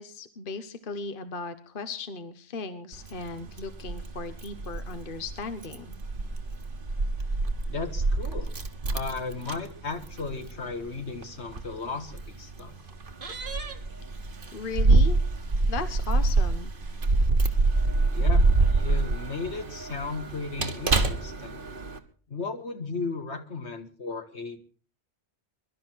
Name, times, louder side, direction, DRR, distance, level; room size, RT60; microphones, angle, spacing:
voice 1, 0.0-6.0 14.5-15.2 15.7-16.7, left 4 dB, 55° left, 11 dB, 1.2 m, -37 dB
Keys jangling, 2.9-22.0, right 3 dB, 55° right, 1.5 m, -26 dB
voice 2, 7.7-8.5 8.9-12.7 18.1-21.6 22.3-24.6, left 4 dB, 80° left, 7 dB, 2.1 m, -35 dB
22.5 x 12.0 x 4.6 m, 0.42 s
omnidirectional pair, 1.1 m